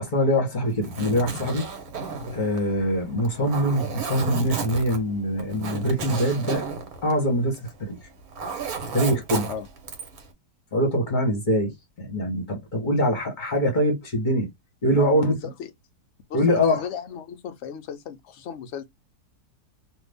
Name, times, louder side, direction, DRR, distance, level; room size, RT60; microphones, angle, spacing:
voice 1, 0.0-1.6 1.9-6.7 7.0-7.9 8.9-9.5 10.7-14.5 14.8-15.3 16.3-16.9, equal, 35° left, 1.0 m, -23 dB
Zipper (clothing), 0.7-7.8 8.1-10.2, right 4 dB, 65° right, 1.3 m, -33 dB
voice 2, 14.9-15.7 16.3-18.8, left 8 dB, 65° left, 0.7 m, -35 dB
2.6 x 2.5 x 3.3 m
omnidirectional pair, 1.7 m